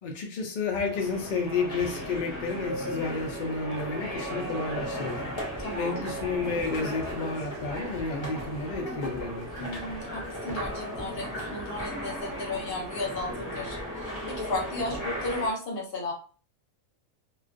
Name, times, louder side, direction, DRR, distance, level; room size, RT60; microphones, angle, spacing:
voice 1, 0.0-5.2 5.8-9.7, left 4 dB, 70° left, 0.4 m, -31 dB
sound 1, 0.9-15.5, equal, 30° left, 0.6 m, -36 dB
voice 2, 5.6-6.0 9.6-16.1, left 2 dB, 55° left, 0.9 m, -34 dB
2.3 x 2.3 x 2.5 m
omnidirectional pair, 1.4 m